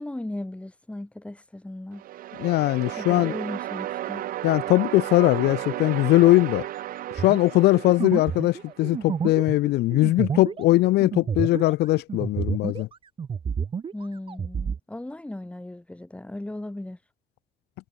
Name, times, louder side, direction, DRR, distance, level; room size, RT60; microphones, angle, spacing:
voice 1, 0.0-2.0 3.0-4.3 13.9-17.0, left 1 dB, 5° left, 2.4 m, -36 dB
sound 1, 1.9-9.0, right 13 dB, 55° right, 0.5 m, -34 dB
voice 2, 2.4-3.3 4.4-6.7 7.2-12.9, left 18 dB, 75° left, 0.5 m, -20 dB
sound 2, 7.2-12.9 13.2-14.8, right 6 dB, 30° right, 0.9 m, -30 dB
cardioid pair, 110°, 17 cm